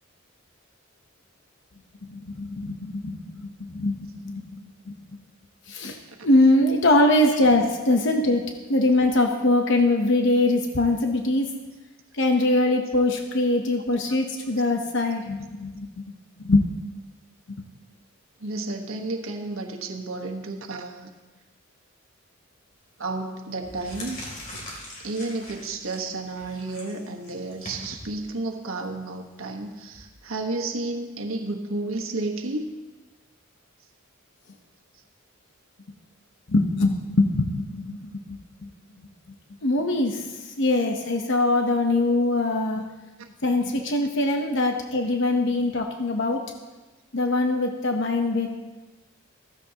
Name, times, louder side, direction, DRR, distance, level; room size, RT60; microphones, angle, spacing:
voice 1, 2.1-4.9 5.7-6.0 6.2-11.5 12.1-16.0 16.4-16.7 36.5-38.7 39.6-42.9 43.4-46.5 47.1-48.5, left 2 dB, 60° left, 3 dB, 1.0 m, -23 dB
voice 2, 18.4-21.1 23.0-24.2 25.0-32.7 43.2-43.3, right 2 dB, 85° right, 3 dB, 1.3 m, -32 dB
sound 1, 22.8-23.0 23.5-30.0, left 1 dB, 40° left, 3.1 m, -42 dB
15.0 x 14.5 x 2.9 m, 1.2 s
head